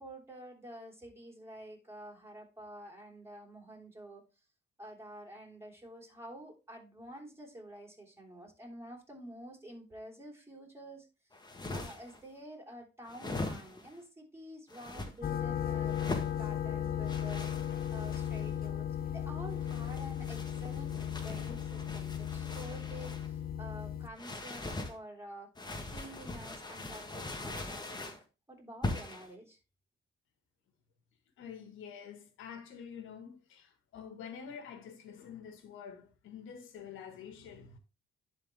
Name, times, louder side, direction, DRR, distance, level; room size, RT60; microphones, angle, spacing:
voice 1, 0.0-4.2 4.8-11.1 11.7-25.5 25.9-28.2 28.5-29.6, right 1 dB, 15° right, 3.2 m, -49 dB
sound 1, 11.3-12.2 13.1-14.0 14.7-15.1 15.9-16.3 17.1-18.5 19.5-23.3 24.2-24.9 25.5-28.2 28.8-29.3, left 2 dB, 20° left, 1.4 m, -41 dB
sound 2, 15.2-24.1, left 10 dB, 50° left, 0.6 m, -36 dB
voice 2, 31.4-37.8, left 7 dB, 90° left, 1.5 m, -47 dB
11.0 x 4.0 x 3.3 m
cardioid pair, 90°, 20 cm